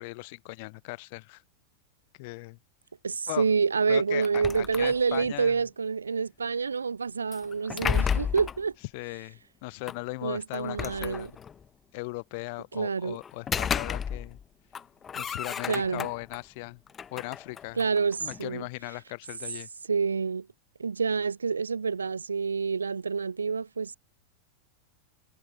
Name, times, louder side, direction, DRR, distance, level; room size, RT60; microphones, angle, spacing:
voice 1, 0.0-1.4 2.2-2.6 3.3-3.4 3.9-5.6 8.9-11.4 11.9-14.4 15.1-16.8 17.1-17.8 18.2-19.7, left 27 dB, 50° left, 2.7 m, -38 dB
voice 2, 3.0-8.7 10.2-11.3 12.7-13.2 15.7-16.1 17.8-18.6 19.9-20.5 20.8-24.0, right 5 dB, 75° right, 0.3 m, -28 dB
sound 1, 4.2-5.3 7.3-8.6 9.9-10.0 10.5-11.6 13.2-14.4 14.7-16.4 16.9-18.5, left 7 dB, 20° left, 1.7 m, -32 dB
figure-of-eight pair, 90°, 0 cm